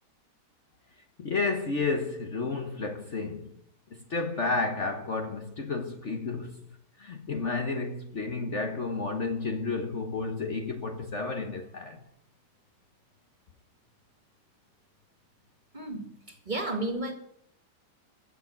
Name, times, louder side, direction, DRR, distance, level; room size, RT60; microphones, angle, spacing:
voice 1, 1.2-3.5 3.9-6.6 7.0-12.0, left 3 dB, 45° left, 1.4 m, -31 dB
voice 2, 15.7-17.1, right 2 dB, 25° right, 2.3 m, -33 dB
16.0 x 6.8 x 10.0 m
omnidirectional pair, 1.9 m